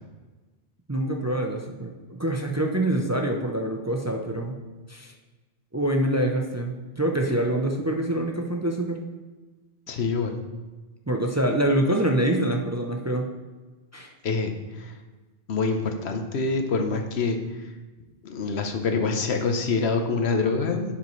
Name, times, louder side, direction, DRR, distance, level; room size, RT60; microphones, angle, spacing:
voice 1, 0.9-4.6 4.9-5.1 5.7-9.0 11.1-13.3 13.9-14.1, right 1 dB, 20° right, 2 dB, 0.5 m, -25 dB
voice 2, 9.9-10.4 14.2-14.9 15.5-17.4 18.2-20.9, left 4 dB, 85° left, 5 dB, 1.1 m, -26 dB
10.5 x 5.7 x 3.2 m, 1.2 s
omnidirectional pair, 1.1 m